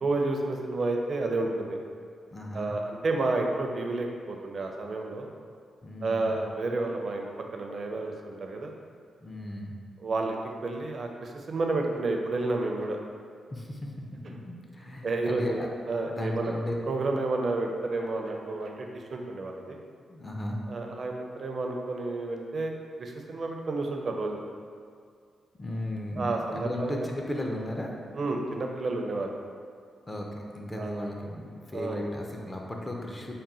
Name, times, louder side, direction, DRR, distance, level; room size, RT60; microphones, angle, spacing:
voice 1, 0.0-1.8 2.5-5.3 6.0-7.3 7.5-8.8 10.0-13.0 15.0-15.6 15.9-16.5 16.9-19.8 20.7-24.4 26.2-27.1 28.1-29.3 30.8-31.0 31.7-32.0, right 2 dB, 50° right, 2 dB, 0.4 m, -30 dB
voice 2, 2.3-2.7 5.8-6.3 9.2-9.7 13.5-15.7 16.0-16.8 20.1-20.6 25.6-27.9 30.1-33.3, left 1 dB, 20° left, 0 dB, 0.5 m, -35 dB
3.6 x 2.1 x 4.1 m, 2.1 s
cardioid pair, 95°, 0 cm